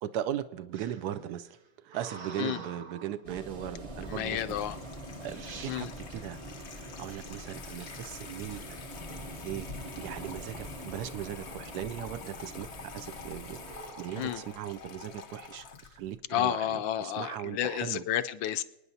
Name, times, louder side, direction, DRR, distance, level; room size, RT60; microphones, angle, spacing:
voice 1, 0.0-4.4 5.2-6.4 6.7-8.8 9.4-9.7 10.0-18.0, right 11 dB, 80° right, 0.9 m, -38 dB
sound 1, 0.7-3.2 4.0-4.4 5.0-5.1 5.3-5.8 7.8-9.5 9.9-10.3 10.6-11.8 12.3-12.7 13.5-14.6, right 5 dB, 60° right, 1.6 m, -48 dB
sound 2, 3.2-13.8, equal, 25° right, 0.7 m, -44 dB
Water tap faucet / Sink (filling or washing), 4.0-16.2, left 6 dB, 60° left, 0.7 m, -47 dB
voice 2, 4.1-4.8 5.7-5.9 14.2-14.4 16.3-18.6, left 11 dB, 75° left, 1.2 m, -31 dB
28.0 x 9.8 x 2.7 m
omnidirectional pair, 2.2 m